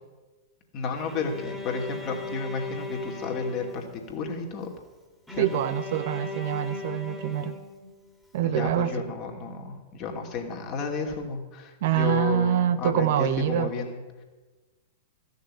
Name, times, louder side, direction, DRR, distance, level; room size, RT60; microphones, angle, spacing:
voice 1, 0.7-4.7 5.3-5.4 8.4-14.2, left 4 dB, 40° left, 1 dB, 2.6 m, -32 dB
Bowed string instrument, 1.1-4.3 5.3-8.2, left 2 dB, ahead, 2.2 m, -38 dB
voice 2, 5.4-7.6 8.3-8.9 11.8-13.7, right 11 dB, 55° right, 12 dB, 0.8 m, -25 dB
14.0 x 6.7 x 9.6 m, 1.2 s
figure-of-eight pair, 105°, 0 cm